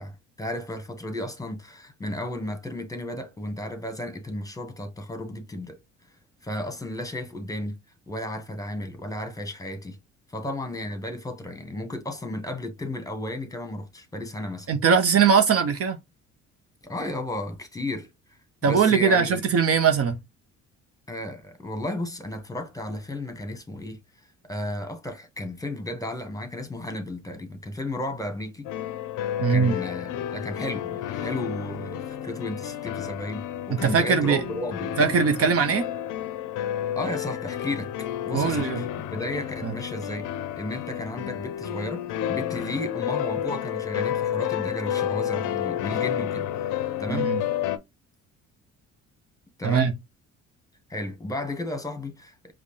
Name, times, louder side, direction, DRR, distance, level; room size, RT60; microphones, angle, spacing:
voice 1, 0.0-5.8 6.4-7.8 8.1-10.0 10.3-14.7 16.8-18.1 18.6-19.4 21.1-24.0 24.5-28.7 29.5-34.9 36.9-37.9 38.2-40.3 40.6-42.0 42.3-46.5 46.8-47.3 49.6-49.9 50.9-52.5, left 1 dB, 10° left, 1.1 m, -33 dB
voice 2, 14.7-16.0 18.6-20.2 29.4-29.7 33.7-34.4 35.0-35.9 38.3-38.8 39.6-39.7 47.1-47.4 49.6-49.9, right 6 dB, 45° right, 0.6 m, -21 dB
sound 1, 28.6-47.8, left 11 dB, 75° left, 0.5 m, -31 dB
5.0 x 2.1 x 3.1 m
supercardioid pair, 75°, 32 cm